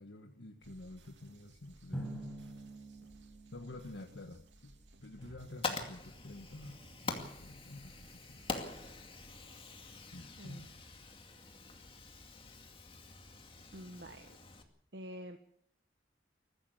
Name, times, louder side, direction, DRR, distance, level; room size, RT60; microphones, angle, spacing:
voice 1, 0.0-2.5 3.5-4.7 5.0-6.8 7.0-8.5 9.2-9.5 10.1-10.7, left 2 dB, 85° left, 4 dB, 1.4 m, -50 dB
sound 1, 0.6-9.4, right 2 dB, 85° right, 2.9 m, -61 dB
Drum, 1.9-4.6, right 1 dB, 5° left, 5.1 m, -46 dB
Fire, 5.2-14.6, left 3 dB, 30° left, 2.4 m, -45 dB
voice 2, 10.4-10.7 13.7-14.3 14.9-15.4, equal, 65° right, 6 dB, 1.3 m, -47 dB
22.0 x 15.0 x 8.1 m, 0.70 s
head